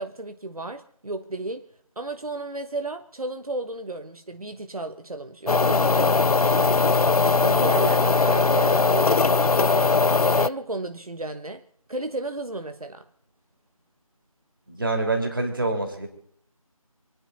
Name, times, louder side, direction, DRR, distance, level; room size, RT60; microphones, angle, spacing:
voice 1, 0.0-1.6 2.0-6.9 7.4-10.0 10.3-13.1, right 2 dB, 75° right, 1.3 m, -33 dB
sound 1, 5.5-10.5, left 4 dB, 85° left, 0.6 m, -20 dB
voice 2, 14.7-16.1, right 2 dB, 35° right, 3.1 m, -26 dB
28.0 x 10.0 x 4.0 m
figure-of-eight pair, 175°, 19 cm